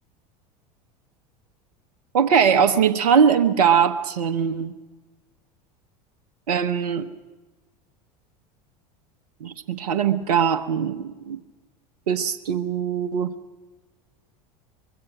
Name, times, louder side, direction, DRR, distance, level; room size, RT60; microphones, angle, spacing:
voice 1, 2.1-4.7 6.5-7.1 9.4-11.4 12.1-13.3, right 7 dB, 80° right, 1.1 m, -21 dB
24.0 x 22.0 x 6.0 m
hypercardioid pair, 85°, 20 cm